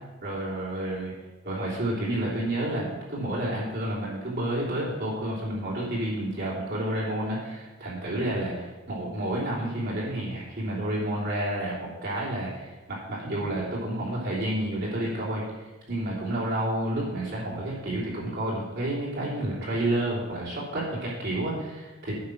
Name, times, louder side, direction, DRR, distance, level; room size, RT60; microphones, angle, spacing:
voice 1, 0.2-1.1 1.4-22.1, right 1 dB, 50° right, -6 dB, 3.2 m, -30 dB
9.5 x 6.7 x 6.2 m, 1.2 s
head